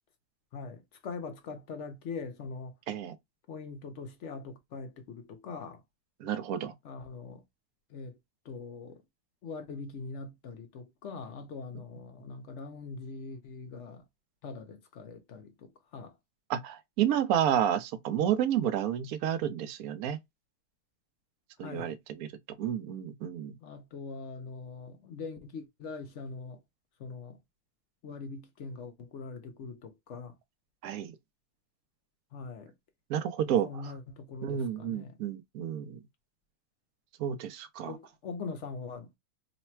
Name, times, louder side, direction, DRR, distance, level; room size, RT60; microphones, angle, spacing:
voice 1, 0.5-2.7 3.5-5.8 6.8-7.4 7.9-8.2 8.4-9.0 9.4-14.0 14.4-16.1 21.6-22.0 23.6-26.6 27.0-27.4 28.0-30.3 32.3-32.7 33.6-35.2 37.8-39.1, left 4 dB, 65° left, 0.7 m, -42 dB
voice 2, 6.2-6.7 16.5-20.2 21.6-22.3 22.6-23.5 30.8-31.1 33.1-33.7 34.4-36.0 37.2-38.0, right 10 dB, 70° right, 1.0 m, -30 dB
3.2 x 2.1 x 4.3 m
omnidirectional pair, 1.8 m